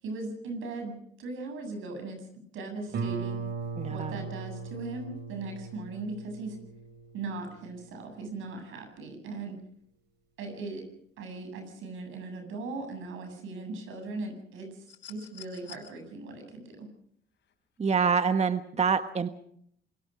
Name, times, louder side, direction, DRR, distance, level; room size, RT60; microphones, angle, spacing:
voice 1, 0.0-2.3 2.5-3.4 3.9-6.6 7.1-9.6 10.4-10.8 11.2-16.9, right 3 dB, 85° right, 5 dB, 8.0 m, -39 dB
Guitar, 2.9-8.3, right 5 dB, 60° right, 2.6 m, -38 dB
voice 2, 3.8-4.2 17.8-19.3, right 5 dB, 35° right, 9 dB, 1.3 m, -26 dB
sound 1, 14.9-15.9 17.4-17.5, left 10 dB, 70° left, 5.9 m, -48 dB
26.0 x 22.0 x 5.2 m, 0.65 s
cardioid pair, 90°, 20 cm